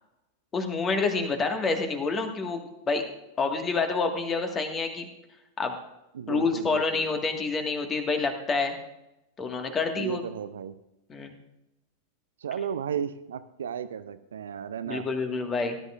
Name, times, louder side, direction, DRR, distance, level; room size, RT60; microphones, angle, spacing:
voice 1, 0.5-3.0 3.4-5.1 5.6-5.8 6.3-8.8 9.4-10.2 11.1-11.3 14.9-15.8, left 4 dB, 20° left, 5 dB, 1.7 m, -28 dB
voice 2, 6.1-7.0 9.9-10.7 12.4-15.1, right 8 dB, 65° right, 12 dB, 0.6 m, -34 dB
18.0 x 11.5 x 2.5 m, 0.91 s
figure-of-eight pair, 90°, 0 cm